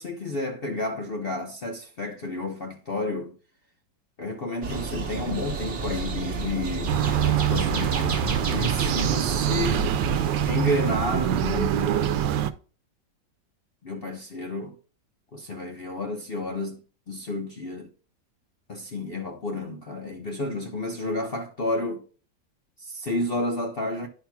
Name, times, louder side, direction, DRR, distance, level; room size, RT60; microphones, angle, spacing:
voice 1, 0.0-3.3 4.2-7.0 7.3-9.9 10.4-12.1 13.8-14.7 15.3-17.9 18.7-22.0 22.8-24.1, left 2 dB, 55° left, 0.6 m, -31 dB
sound 1, 4.6-10.5, right 4 dB, 40° right, 1.3 m, -31 dB
sound 2, 6.9-12.5, right 9 dB, 75° right, 1.3 m, -24 dB
10.5 x 5.8 x 2.2 m
omnidirectional pair, 2.0 m